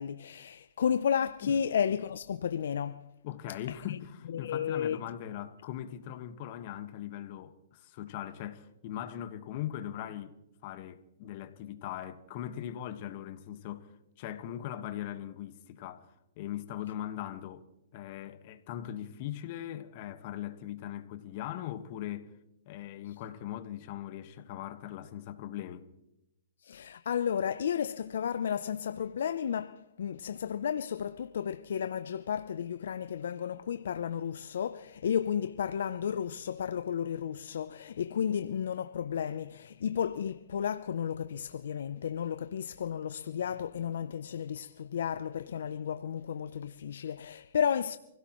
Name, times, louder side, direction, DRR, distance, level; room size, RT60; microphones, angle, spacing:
voice 1, 0.0-3.0 3.9-4.0 4.3-5.0 26.6-48.0, left 8 dB, 75° left, 0.6 m, -33 dB
voice 2, 3.2-10.4 10.6-13.9 14.2-17.6 17.9-22.3 22.6-25.9, left 11 dB, 45° left, 1.5 m, -40 dB
28.0 x 16.5 x 3.1 m
hypercardioid pair, 140°, 0 cm